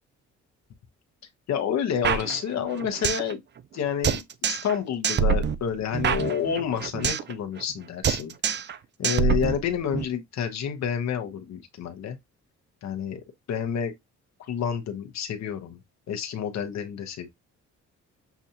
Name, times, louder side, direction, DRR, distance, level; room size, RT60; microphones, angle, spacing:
voice 1, 1.5-3.4 3.7-8.3 9.0-12.2 12.8-13.2 13.5-13.9 14.4-15.8 16.1-17.3, left 8 dB, 65° left, 1.0 m, -29 dB
sound 1, 2.0-3.3 3.6-3.7 4.0-4.8 5.0-7.3 7.6-7.8 8.0-8.8 9.0-10.0, right 7 dB, 35° right, 0.5 m, -26 dB
7.0 x 2.4 x 2.8 m
cardioid pair, 90°, 30 cm